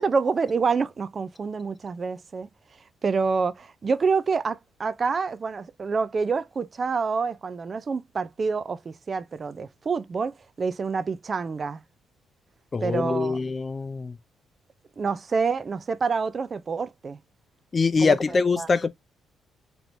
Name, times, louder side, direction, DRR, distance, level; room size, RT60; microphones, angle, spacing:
voice 1, 0.0-2.5 3.0-11.8 12.8-13.4 15.0-17.2 18.0-18.2 18.6-18.7, right 5 dB, 40° right, 0.4 m, -27 dB
voice 2, 12.7-14.2 17.7-18.9, left 4 dB, 35° left, 0.5 m, -23 dB
3.2 x 3.0 x 2.6 m
cardioid pair, 90°, 0 cm